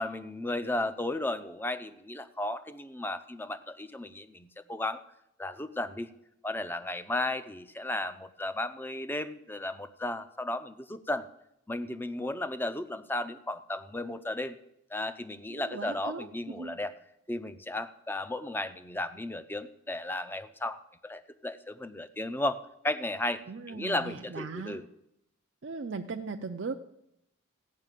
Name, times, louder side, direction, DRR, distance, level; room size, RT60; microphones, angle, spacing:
voice 1, 0.0-5.0 5.4-6.1 6.4-11.2 11.7-14.5 14.9-16.9 17.3-24.8, left 1 dB, 10° left, 12 dB, 0.5 m, -34 dB
voice 2, 15.5-16.8 23.5-24.8 25.6-26.8, right 4 dB, 60° right, 4 dB, 0.5 m, -38 dB
15.5 x 5.8 x 9.1 m, 0.80 s
head